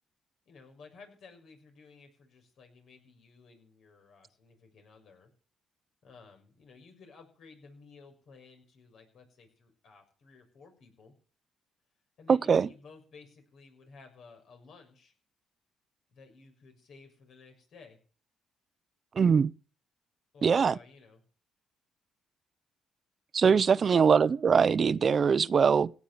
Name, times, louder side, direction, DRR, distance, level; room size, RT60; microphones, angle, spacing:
voice 1, 0.5-5.3 6.0-11.1 12.2-15.1 16.1-18.0 20.3-21.2 23.7-24.3 24.9-25.0, left 4 dB, 65° left, 6.4 m, -55 dB
voice 2, 12.3-12.7 19.2-19.5 20.4-20.8 23.3-25.9, right 6 dB, 45° right, 0.7 m, -22 dB
17.0 x 9.5 x 6.8 m
cardioid pair, 90°, 0 cm